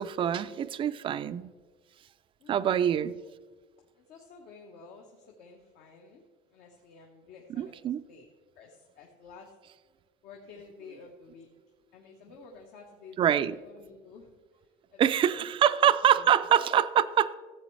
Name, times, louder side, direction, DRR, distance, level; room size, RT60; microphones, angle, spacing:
voice 1, 0.0-1.5 2.5-3.2 7.6-8.0 13.2-13.6 15.0-17.3, right 10 dB, 35° right, 0.3 m, -25 dB
voice 2, 2.4-2.7 3.9-6.2 6.5-7.7 8.1-8.3 8.5-9.5 10.2-11.5 11.9-14.3 14.9-15.7 16.3-17.0, left 5 dB, 70° left, 1.3 m, -50 dB
14.5 x 8.0 x 3.2 m
cardioid pair, 130°, 16 cm